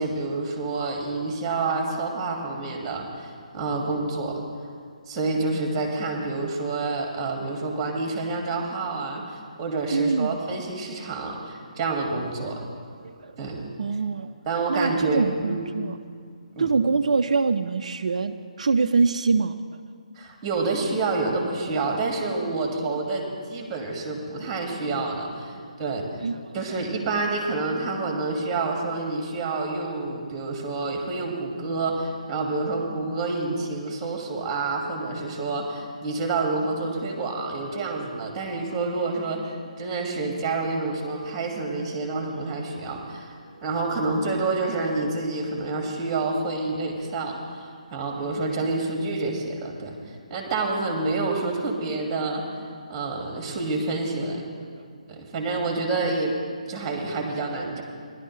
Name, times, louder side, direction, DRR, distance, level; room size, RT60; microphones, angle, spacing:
voice 1, 0.0-4.4 5.1-12.6 13.4-13.7 14.5-15.7 16.6-16.7 20.2-26.0 26.5-43.3 43.6-52.4 52.9-54.4 55.1-56.4 56.7-57.8, right 3 dB, 20° right, 2 dB, 1.8 m, -28 dB
voice 2, 9.9-10.3 13.0-13.4 13.8-14.3 14.7-16.0 16.6-19.6 22.8-23.0 25.5-25.9 26.2-26.6 28.1-28.2 33.6-33.7 37.9-38.5 43.5-43.6 54.6-54.9 57.5-57.8, right 4 dB, 60° right, 7 dB, 0.4 m, -25 dB
18.0 x 11.5 x 3.2 m, 2.2 s
figure-of-eight pair, 145°, 4 cm